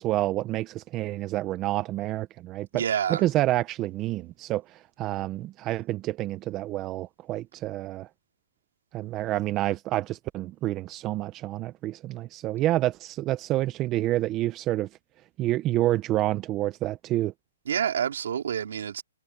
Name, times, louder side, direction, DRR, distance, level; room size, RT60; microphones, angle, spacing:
voice 1, 0.0-2.8 3.1-8.1 8.9-14.9 15.4-17.3, right 15 dB, 15° right, 0.4 m, -28 dB
voice 2, 2.7-3.2 17.7-19.0, right 8 dB, 55° right, 2.8 m, -28 dB
hypercardioid pair, 175°, 0 cm